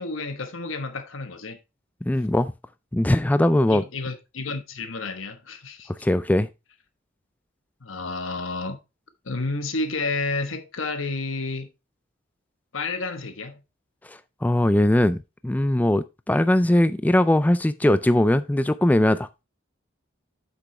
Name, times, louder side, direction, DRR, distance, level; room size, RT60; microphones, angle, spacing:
voice 1, 0.0-1.6 3.7-5.9 7.8-8.8 9.2-11.7 12.7-13.6, left 3 dB, 90° left, 1.2 m, -30 dB
voice 2, 2.1-2.5 2.9-3.8 6.0-6.5 14.0-15.2 15.4-19.3, left 1 dB, 10° left, 0.3 m, -20 dB
8.3 x 6.1 x 3.2 m
head